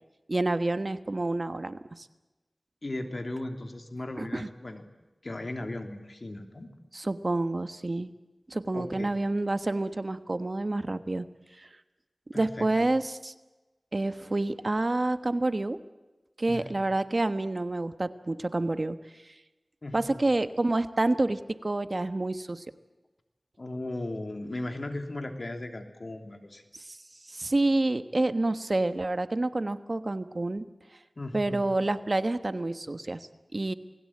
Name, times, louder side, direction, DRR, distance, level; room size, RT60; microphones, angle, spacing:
voice 1, 0.3-2.1 4.2-4.5 6.9-8.1 8.5-11.3 11.6-11.7 12.3-13.3 13.9-15.8 16.4-19.0 19.9-22.6 26.7-27.0 27.3-30.6 31.3-33.7, right 2 dB, 45° right, 11 dB, 1.3 m, -28 dB
voice 2, 2.8-4.8 5.2-6.7 8.7-9.1 12.3-12.9 16.5-16.6 19.8-20.2 23.6-26.6 31.2-31.6, left 2 dB, 55° left, 6 dB, 3.1 m, -37 dB
28.5 x 20.5 x 8.8 m, 1.1 s
wide cardioid pair, 65°, 0 cm